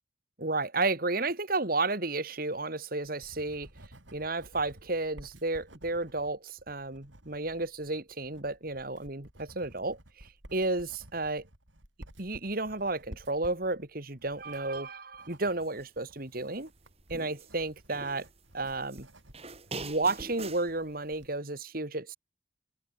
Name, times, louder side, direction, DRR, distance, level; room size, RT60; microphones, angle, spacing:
voice 1, 0.4-3.7 4.1-11.4 12.2-16.7 17.1-18.3 18.5-19.1 19.8-22.2, right 2 dB, 50° right, 2.6 m, -32 dB
Writing, 2.8-21.4, right 1 dB, 85° right, 5.5 m, -54 dB
sound 1, 15.6-15.9 16.3-17.5 17.9-19.0 19.3-20.7, right 3 dB, 35° right, 3.7 m, -44 dB
head